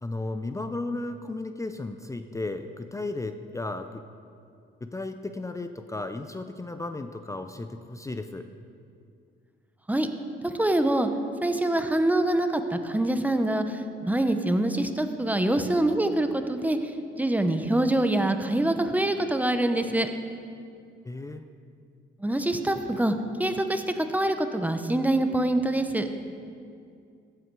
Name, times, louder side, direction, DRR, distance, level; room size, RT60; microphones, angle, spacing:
voice 1, 0.0-4.0 4.8-8.5 21.0-21.4, left 2 dB, 15° left, 8 dB, 0.5 m, -34 dB
voice 2, 10.4-11.1 11.4-20.1 22.2-26.1, right 1 dB, 10° right, 7 dB, 0.8 m, -25 dB
14.5 x 8.3 x 4.7 m, 2.4 s
cardioid pair, 90°, 20 cm